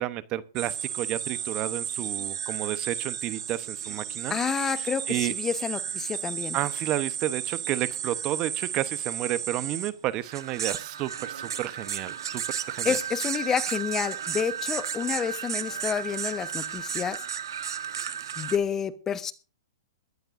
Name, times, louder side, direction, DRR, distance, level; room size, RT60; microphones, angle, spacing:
voice 1, 0.0-4.4 4.8-5.3 6.5-12.4 12.7-13.0, right 14 dB, 35° right, 0.9 m, -31 dB
sound 1, 0.6-18.6, right 8 dB, 75° right, 1.5 m, -33 dB
voice 2, 4.3-6.6 12.8-17.2 18.4-19.3, left 7 dB, 20° left, 1.0 m, -29 dB
21.0 x 13.0 x 2.6 m
hypercardioid pair, 125°, 2 cm